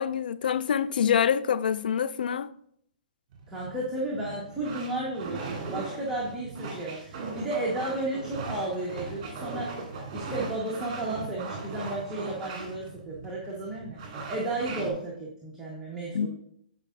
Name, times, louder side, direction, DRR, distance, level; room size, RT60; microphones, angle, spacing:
voice 1, 0.0-2.5 16.1-16.3, left 8 dB, 75° left, 0.3 m, -26 dB
sound 1, 3.3-14.9, right 3 dB, 45° right, 2.3 m, -39 dB
voice 2, 3.5-9.7 10.1-14.0 14.3-16.3, right 2 dB, 10° right, 1.4 m, -33 dB
9.7 x 4.9 x 2.6 m
hypercardioid pair, 135°, 5 cm